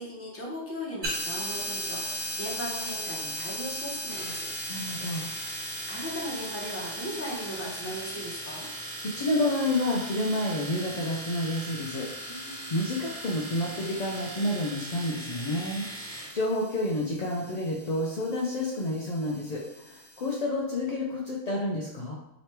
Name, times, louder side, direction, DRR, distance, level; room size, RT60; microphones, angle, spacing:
voice 1, 0.0-4.5 5.2-8.7 12.2-12.7, equal, 15° left, -4 dB, 0.7 m, -38 dB
sound 1, 1.0-20.4, equal, 75° right, 1.7 m, -39 dB
Domestic sounds home sounds, 4.1-16.4, right 1 dB, 40° right, 1.2 m, -40 dB
voice 2, 4.7-5.3 9.1-22.1, left 1 dB, 60° left, -3 dB, 0.4 m, -30 dB
3.1 x 3.0 x 4.4 m, 0.91 s
omnidirectional pair, 1.3 m